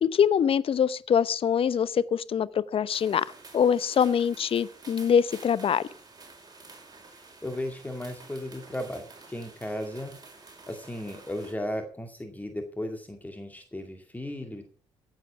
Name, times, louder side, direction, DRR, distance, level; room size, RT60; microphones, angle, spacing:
voice 1, 0.0-3.2 3.5-5.9, left 8 dB, 45° left, 0.8 m, -24 dB
sound 1, 2.9-11.5, right 3 dB, 30° right, 4.9 m, -50 dB
voice 2, 7.1-10.1 10.7-14.7, left 1 dB, 10° left, 2.2 m, -36 dB
15.0 x 7.6 x 5.8 m
hypercardioid pair, 50°, 13 cm